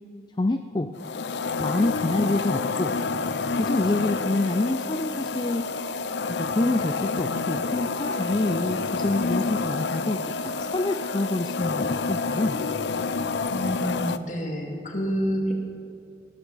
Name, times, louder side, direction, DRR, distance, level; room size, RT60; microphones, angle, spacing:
voice 1, 0.4-0.9 1.6-2.9 3.6-5.7 6.3-12.6, left 2 dB, 25° left, 8 dB, 0.4 m, -27 dB
sound 1, 1.0-14.2, left 4 dB, 75° left, 0.5 m, -28 dB
voice 2, 13.5-15.5, equal, 45° left, 1 dB, 2.1 m, -28 dB
18.5 x 13.0 x 4.1 m, 2.5 s
head